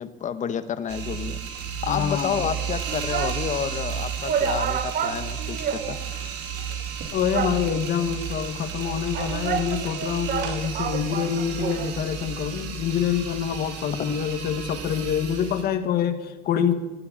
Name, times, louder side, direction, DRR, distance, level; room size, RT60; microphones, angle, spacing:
voice 1, 0.0-6.0, left 8 dB, 45° left, 12 dB, 1.2 m, -30 dB
sound 1, 0.9-15.6, right 7 dB, 80° right, 3.0 m, -33 dB
voice 2, 1.8-2.5 7.1-16.7, left 8 dB, 65° left, 10 dB, 1.6 m, -26 dB
sound 2, 2.5-3.5 3.9-4.0 4.2-6.3 6.6-6.7 7.3-8.0 8.8-12.0 12.2-12.3, right 8 dB, 60° right, 1.1 m, -30 dB
19.0 x 7.9 x 8.8 m, 1.1 s
cardioid pair, 110°, 17 cm